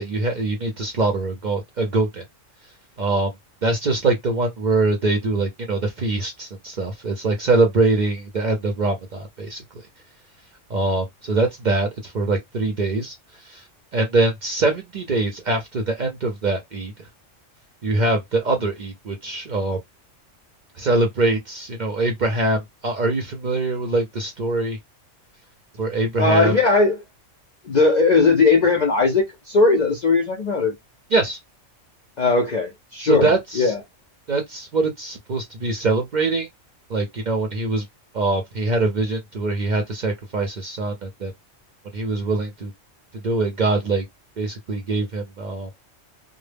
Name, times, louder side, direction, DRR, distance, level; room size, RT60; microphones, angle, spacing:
voice 1, 0.0-2.2 3.0-3.3 3.6-9.6 10.7-13.1 13.5-13.6 13.9-16.9 17.8-19.8 20.8-24.8 25.8-26.5 31.1-31.4 33.0-33.7 34.3-36.5 36.9-37.8 38.1-41.3 41.9-42.7 43.2-44.1 44.4-45.7, right 2 dB, 55° right, 0.5 m, -23 dB
voice 2, 26.2-27.0 27.6-30.7 32.2-33.3 33.5-33.8, left 3 dB, 60° left, 0.4 m, -18 dB
2.1 x 2.1 x 3.3 m
omnidirectional pair, 1.3 m